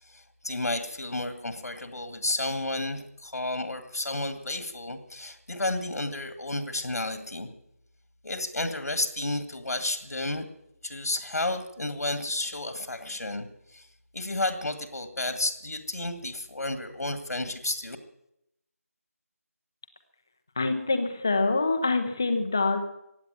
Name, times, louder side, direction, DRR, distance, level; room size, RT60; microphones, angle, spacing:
voice 1, 0.1-7.5 8.2-10.5 10.8-13.5 13.7-13.9 14.1-18.0, left 2 dB, 85° left, 9 dB, 2.0 m, -32 dB
voice 2, 20.6-22.8, left 3 dB, 15° left, 7 dB, 0.7 m, -25 dB
15.5 x 9.8 x 9.2 m, 0.80 s
figure-of-eight pair, 180°, 8 cm